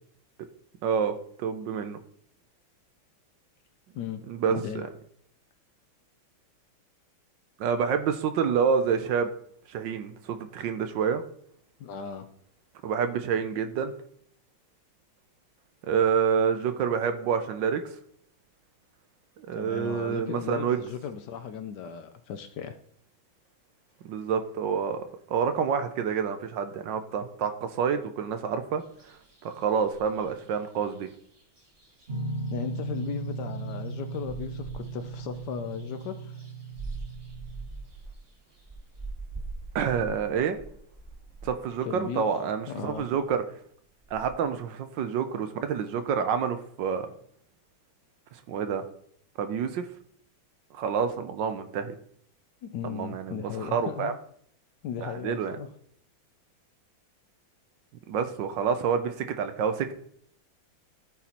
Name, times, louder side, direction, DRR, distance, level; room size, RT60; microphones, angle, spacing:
voice 1, 0.8-2.0 4.3-4.9 7.6-9.3 9.7-11.2 12.8-13.9 15.8-17.8 19.4-20.8 24.0-29.1 29.4-31.1 39.7-40.6 41.4-43.4 44.1-47.1 48.3-48.8 49.4-49.9 50.7-51.9 52.8-54.1 55.0-55.6 58.1-59.9, right 7 dB, 70° right, 8 dB, 1.3 m, -28 dB
voice 2, 3.9-4.2 4.5-4.8 11.8-12.3 19.5-22.8 32.5-36.5 41.8-42.3 42.7-43.1 52.6-54.1 54.8-55.7, left 8 dB, 70° left, 8 dB, 1.1 m, -36 dB
sound 1, 28.8-41.9 42.3-42.4 42.7-44.3, right 3 dB, 15° right, 1.0 m, -45 dB
sound 2, 32.1-37.7, right 3 dB, 40° right, 1.1 m, -36 dB
13.0 x 4.3 x 4.2 m, 0.64 s
omnidirectional pair, 2.2 m